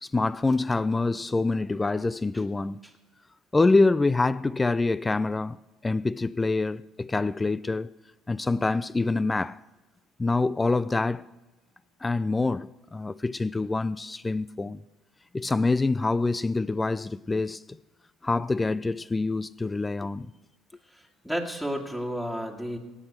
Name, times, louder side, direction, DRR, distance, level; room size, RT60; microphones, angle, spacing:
voice 1, 0.0-2.8 3.5-5.6 5.8-7.9 8.3-9.6 10.2-11.3 12.0-14.8 15.3-17.6 18.2-20.3, left 3 dB, 20° left, 0.3 m, -26 dB
voice 2, 20.9-22.8, equal, ahead, 2.0 m, -32 dB
17.5 x 6.1 x 8.1 m
supercardioid pair, 75°, 0 cm